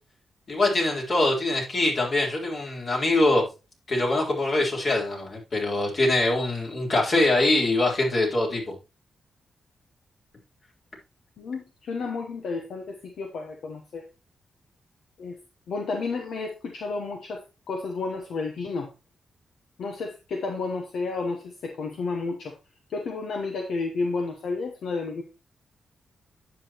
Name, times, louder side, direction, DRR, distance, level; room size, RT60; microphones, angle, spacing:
voice 1, 0.5-3.5 3.9-8.7, left 2 dB, 55° left, -2 dB, 3.9 m, -23 dB
voice 2, 11.4-14.1 15.2-15.4 15.7-18.9 19.8-22.5 22.9-25.2, left 4 dB, 80° left, 4 dB, 1.0 m, -31 dB
9.7 x 7.0 x 3.0 m, 0.28 s
cardioid pair, 55°, 0 cm